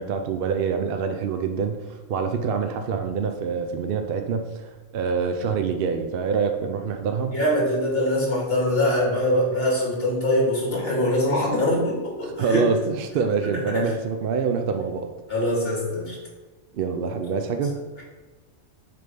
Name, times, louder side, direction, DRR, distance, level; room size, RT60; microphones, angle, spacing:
voice 1, 0.0-7.3 12.2-15.1 16.7-17.8, right 5 dB, 60° right, 6 dB, 0.7 m, -26 dB
voice 2, 7.3-12.6 13.7-13.8 15.3-16.2, left 1 dB, 55° left, -4 dB, 2.4 m, -23 dB
6.7 x 3.5 x 5.3 m, 1.3 s
omnidirectional pair, 1.2 m